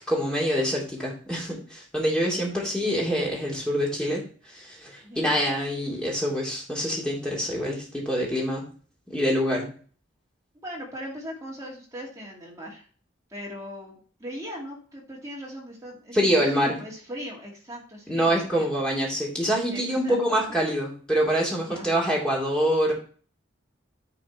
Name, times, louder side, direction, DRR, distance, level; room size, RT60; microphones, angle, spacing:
voice 1, 0.1-8.6 9.1-9.7 16.1-16.8 18.1-22.9, equal, 5° left, -3 dB, 2.7 m, -25 dB
voice 2, 10.6-12.9 13.3-18.7 19.7-20.6 21.6-21.9, equal, 15° right, -3 dB, 2.3 m, -39 dB
9.8 x 5.2 x 4.4 m, 0.42 s
head